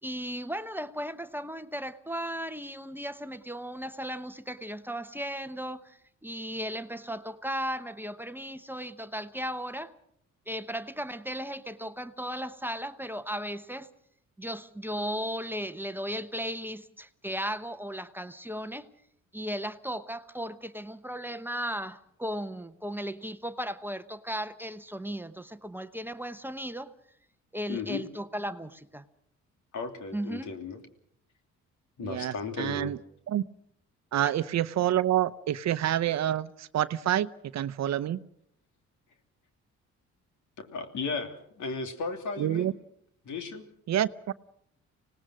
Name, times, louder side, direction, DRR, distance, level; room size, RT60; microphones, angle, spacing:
voice 1, 0.0-9.9 10.5-13.9 14.4-18.9 19.3-26.9 27.5-29.0 30.1-30.5, equal, 5° right, 10 dB, 0.9 m, -36 dB
voice 2, 27.7-28.0 29.7-30.8 32.0-33.0 40.6-42.7 43.2-43.7, left 4 dB, 75° left, 6 dB, 2.9 m, -35 dB
voice 3, 32.0-33.0 33.3-33.4 34.1-37.3 37.5-38.2 42.4-42.7 43.9-44.3, right 11 dB, 60° right, 15 dB, 0.8 m, -27 dB
25.5 x 18.5 x 6.3 m, 0.70 s
cardioid pair, 90°, 30 cm